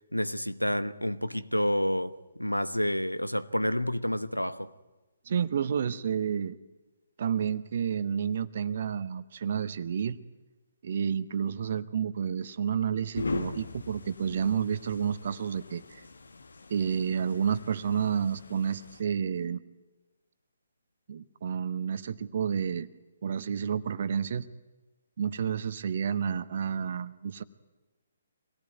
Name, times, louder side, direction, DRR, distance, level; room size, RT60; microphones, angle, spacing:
voice 1, 0.1-4.7, equal, 85° left, 1.0 m, -29 dB
voice 2, 5.3-6.6 7.2-10.2 10.8-16.0 16.7-19.6 21.1-22.9 23.2-24.5 25.2-27.4, right 7 dB, 45° right, 1.1 m, -30 dB
sound 1, 13.1-19.0, left 3 dB, 65° left, 1.3 m, -40 dB
25.0 x 19.0 x 9.4 m
figure-of-eight pair, 130°, 0 cm